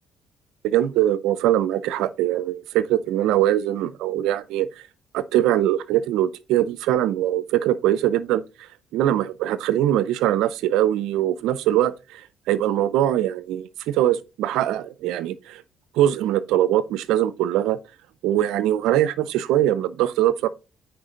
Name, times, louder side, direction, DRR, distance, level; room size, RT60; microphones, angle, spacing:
voice 1, 0.6-4.9 5.1-15.6 15.9-17.8 18.2-20.5, right 12 dB, 85° right, 0.6 m, -22 dB
9.3 x 4.6 x 3.8 m
cardioid pair, 80°, 0 cm